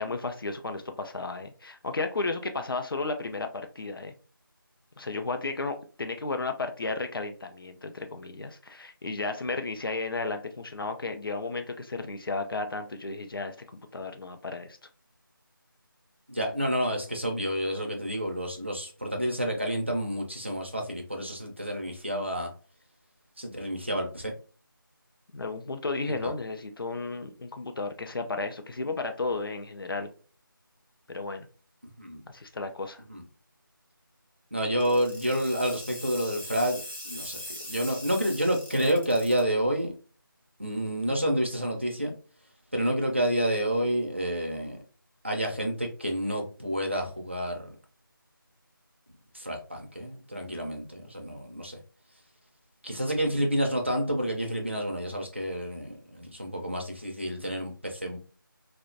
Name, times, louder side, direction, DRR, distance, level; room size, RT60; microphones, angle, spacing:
voice 1, 0.0-4.1 5.0-13.6 13.9-14.8 25.3-30.1 31.1-31.5 32.3-33.0, left 3 dB, 75° left, 6 dB, 0.4 m, -33 dB
voice 2, 16.3-22.5 23.4-24.3 26.0-26.3 32.0-32.2 33.1-33.2 34.5-37.4 37.7-39.9 40.6-42.1 42.7-44.8 45.2-47.7 49.3-51.8 52.8-58.2, equal, 30° right, 2 dB, 0.4 m, -29 dB
sound 1, 34.8-39.4, left 1 dB, 30° left, 0.8 m, -41 dB
2.4 x 2.1 x 2.4 m, 0.38 s
figure-of-eight pair, 180°, 12 cm